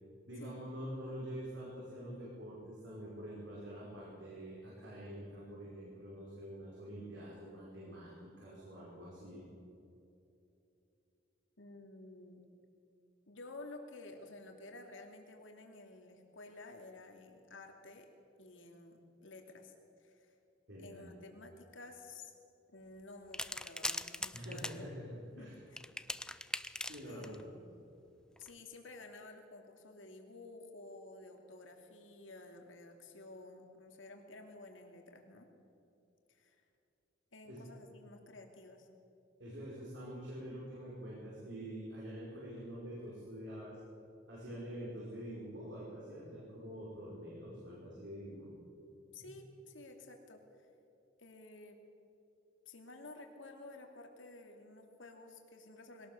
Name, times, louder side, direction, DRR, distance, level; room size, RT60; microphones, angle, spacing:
voice 1, 0.3-9.4 20.7-21.1 24.3-25.1 25.4-25.6 26.8-27.4 37.4-37.6 39.4-43.8 44.3-48.5 49.2-49.3, equal, 65° right, -6 dB, 5.1 m, -46 dB
voice 2, 11.6-12.4 13.3-18.1 18.4-19.7 20.0-20.3 20.8-22.3 22.7-24.7 25.2-25.5 27.1-27.7 28.4-35.5 36.3-36.6 37.3-38.9 44.5-44.6 49.1-50.7 51.2-51.8 52.7-56.1, left 2 dB, 80° left, 3 dB, 2.6 m, -52 dB
sound 1, 23.3-24.8 25.8-27.4 28.4-28.5, left 1 dB, 5° left, 0.5 m, -40 dB
21.5 x 18.0 x 7.1 m, 2.8 s
head